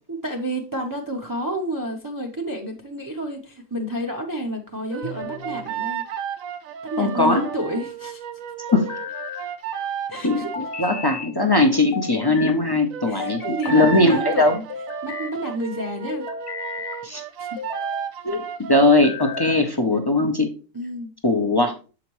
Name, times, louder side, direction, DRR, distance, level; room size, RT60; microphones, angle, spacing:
voice 1, 0.1-6.1 6.8-8.2 10.1-10.5 13.1-14.6 15.0-16.3 17.4-17.6 20.7-21.1, equal, 20° right, 0 dB, 0.6 m, -30 dB
sound 1, 4.9-11.1 12.9-19.1, right 9 dB, 85° right, 1.1 m, -33 dB
sound 2, 5.0-5.7 7.1-7.8 8.7-9.5 10.5-11.3 11.9-12.6 13.2-14.1 14.7-15.3 16.1-17.0 17.6-18.1 18.8-19.7, left 6 dB, 55° left, 0.8 m, -34 dB
voice 2, 7.0-7.4 8.7-8.9 10.2-14.6 17.0-17.2 18.2-18.4 18.7-20.5 21.2-21.7, left 2 dB, 35° left, 4 dB, 0.4 m, -19 dB
7.1 x 4.9 x 3.0 m, 0.35 s
omnidirectional pair, 1.4 m